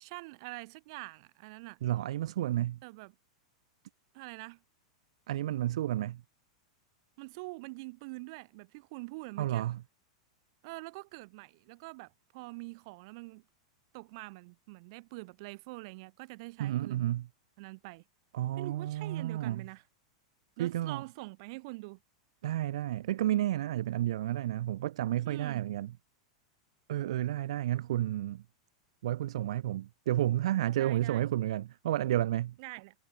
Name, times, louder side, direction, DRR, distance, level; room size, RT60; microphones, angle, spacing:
voice 1, 0.0-1.8 2.8-3.1 4.1-4.6 7.2-9.7 10.6-13.4 13.9-17.1 17.6-18.0 18.6-19.8 20.6-22.0 25.2-25.7 30.8-31.2 32.6-32.9, right 26 dB, 60° right, 5.9 m, -45 dB
voice 2, 1.8-2.8 5.3-6.2 9.4-9.8 16.6-17.3 18.3-19.6 20.6-21.0 22.4-25.9 26.9-28.4 29.0-32.5, right 13 dB, 75° right, 1.1 m, -31 dB
hypercardioid pair, 125°, 3 cm